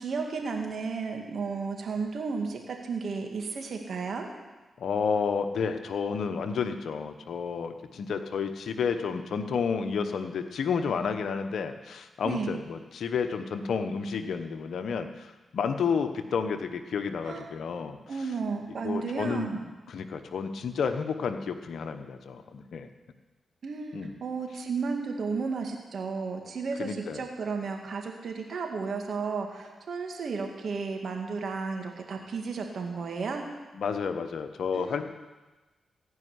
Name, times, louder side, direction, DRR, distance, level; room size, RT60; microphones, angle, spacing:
voice 1, 0.0-4.3 12.2-12.6 17.2-17.5 18.1-19.6 23.6-33.4 34.7-35.0, right 4 dB, 65° right, 3 dB, 2.0 m, -33 dB
voice 2, 4.8-18.0 18.8-19.6 19.9-22.9 23.9-24.1 26.8-27.2 33.7-35.0, left 6 dB, 75° left, 8 dB, 1.1 m, -31 dB
16.0 x 5.8 x 9.6 m, 1.2 s
supercardioid pair, 45°, 0 cm